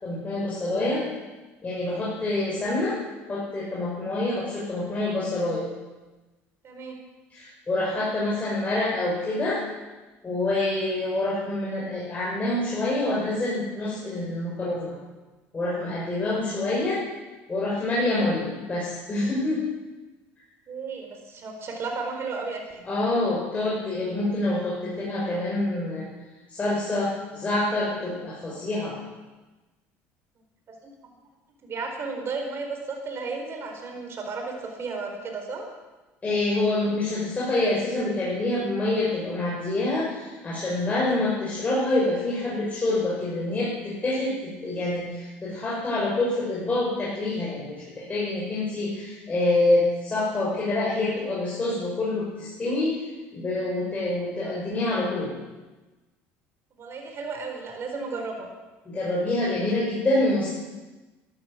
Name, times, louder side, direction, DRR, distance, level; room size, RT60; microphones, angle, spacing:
voice 1, 0.0-1.1 1.6-3.0 3.3-5.7 7.3-9.6 10.2-15.0 15.5-17.0 17.5-19.6 22.9-26.1 26.5-28.9 36.2-53.0 53.3-55.3 58.9-60.5, left 2 dB, 25° left, -6 dB, 5.5 m, -26 dB
voice 2, 0.7-1.0 6.6-7.0 20.7-22.8 31.6-35.7 56.8-58.5, right 4 dB, 45° right, 2 dB, 4.5 m, -34 dB
13.0 x 12.0 x 7.4 m, 1.2 s
supercardioid pair, 90°, 6 cm